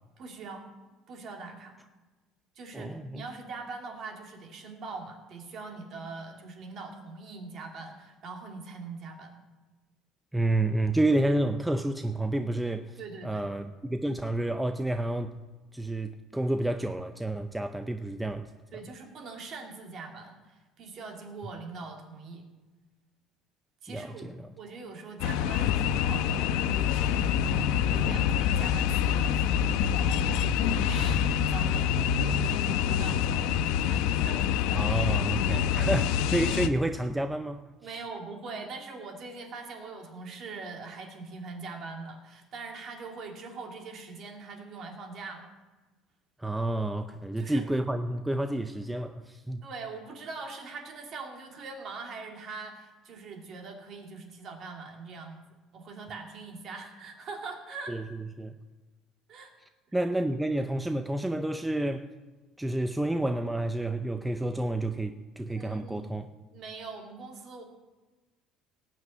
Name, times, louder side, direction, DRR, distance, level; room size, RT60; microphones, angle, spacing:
voice 1, 0.2-0.7 1.1-1.8 2.5-9.4 13.0-13.5 18.7-22.4 23.8-24.3 24.5-34.0 34.2-34.5 35.5-35.6 37.8-45.5 47.4-47.6 49.6-55.4 55.7-58.0 59.3-59.5 65.5-67.6, right 4 dB, 40° right, 2.7 m, -42 dB
voice 2, 2.7-3.2 10.3-15.4 15.7-18.5 23.9-24.5 34.7-37.6 37.9-38.0 46.4-49.6 57.9-58.0 58.4-58.5 59.9-62.1 62.6-66.3, right 1 dB, 5° right, 0.5 m, -30 dB
sound 1, 25.2-36.7, left 9 dB, 80° left, 0.8 m, -26 dB
18.0 x 6.0 x 9.0 m
cardioid pair, 155°, 0 cm